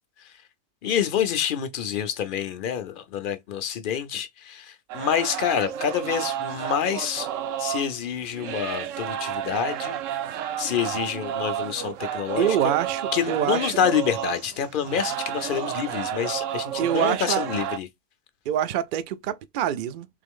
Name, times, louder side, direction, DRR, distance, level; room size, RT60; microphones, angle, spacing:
voice 1, 0.8-7.3 7.6-10.0 10.6-12.6 13.1-17.9, left 9 dB, 50° left, 0.7 m, -27 dB
sound 1, 4.9-17.8, right 10 dB, 85° right, 1.0 m, -31 dB
voice 2, 12.4-13.7 14.8-15.0 16.8-17.4 18.5-20.1, right 10 dB, 60° right, 0.5 m, -25 dB
3.7 x 3.3 x 3.6 m
omnidirectional pair, 1.3 m